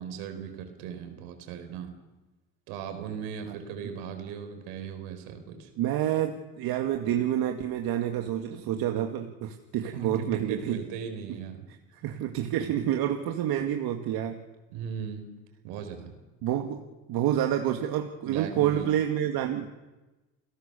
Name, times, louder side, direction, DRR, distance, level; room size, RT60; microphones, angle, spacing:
voice 1, 0.0-1.9 2.7-5.7 9.9-11.7 12.6-12.8 14.7-15.3 15.6-16.2 18.2-19.0, right 7 dB, 85° right, 7 dB, 5.1 m, -38 dB
voice 2, 5.8-10.8 12.0-14.4 16.4-16.8 17.1-19.7, right 11 dB, 70° right, 4 dB, 2.2 m, -28 dB
29.5 x 17.5 x 7.1 m, 1.1 s
supercardioid pair, 95°, 37 cm